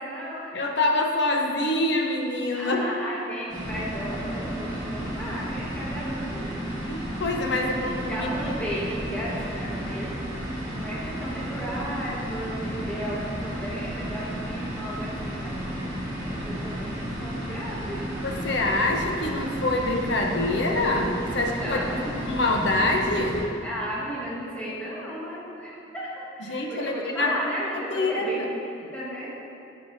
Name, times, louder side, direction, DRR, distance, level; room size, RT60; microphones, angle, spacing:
voice 1, 0.0-0.5 2.6-6.5 7.5-10.2 10.7-18.1 21.5-22.2 23.6-29.3, equal, 5° left, -7 dB, 1.4 m, -35 dB
voice 2, 0.5-2.9 6.9-8.5 18.2-23.4 26.5-27.5 27.9-28.4, left 2 dB, 70° left, 2 dB, 0.8 m, -25 dB
sound 1, 3.5-23.4, equal, 20° right, 1.8 m, -33 dB
12.0 x 6.5 x 2.7 m, 2.8 s
head